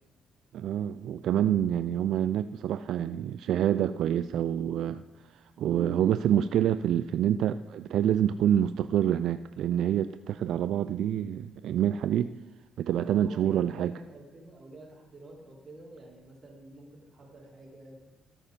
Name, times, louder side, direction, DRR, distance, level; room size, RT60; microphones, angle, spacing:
voice 1, 0.5-5.0 5.6-12.3 12.8-13.9, right 10 dB, 75° right, 12 dB, 0.3 m, -27 dB
voice 2, 6.0-6.3 13.2-18.1, right 2 dB, 35° right, -5 dB, 4.5 m, -49 dB
13.5 x 8.6 x 5.3 m, 1.1 s
cardioid pair, 90°, 0 cm